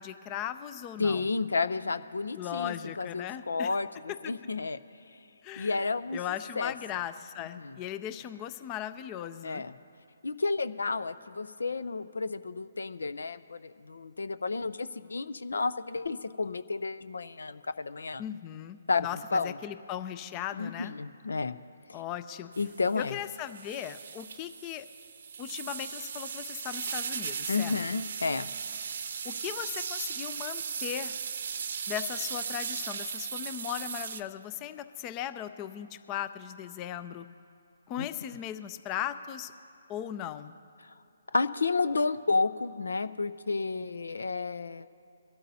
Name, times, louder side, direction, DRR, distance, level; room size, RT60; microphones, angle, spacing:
voice 1, 0.0-1.3 2.4-3.8 4.2-4.3 5.4-5.8 6.1-9.6 18.2-20.9 21.9-22.5 23.0-24.9 25.4-27.8 29.2-31.1 31.9-37.3 37.9-39.5 39.9-40.6, left 11 dB, 25° left, 12 dB, 0.5 m, -38 dB
voice 2, 1.0-5.3 5.6-6.2 6.6-6.7 7.6-7.8 9.4-9.7 10.2-18.2 18.9-19.6 20.6-21.6 21.9-22.0 22.6-23.1 27.5-28.5 38.0-38.1 40.8-40.9 41.3-44.9, left 4 dB, 75° left, 14 dB, 0.5 m, -31 dB
sound 1, 22.5-34.2, right 6 dB, 55° right, 0.7 m, -37 dB
23.0 x 12.5 x 2.8 m, 2.8 s
figure-of-eight pair, 140°, 0 cm